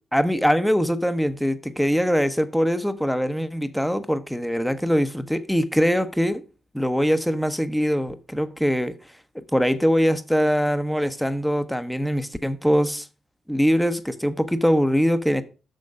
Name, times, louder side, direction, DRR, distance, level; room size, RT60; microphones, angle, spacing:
voice 1, 0.1-6.4 6.7-8.9 9.5-13.1 13.5-15.4, equal, ahead, 0.9 m, -22 dB
6.5 x 6.4 x 4.8 m
supercardioid pair, 50°, 0 cm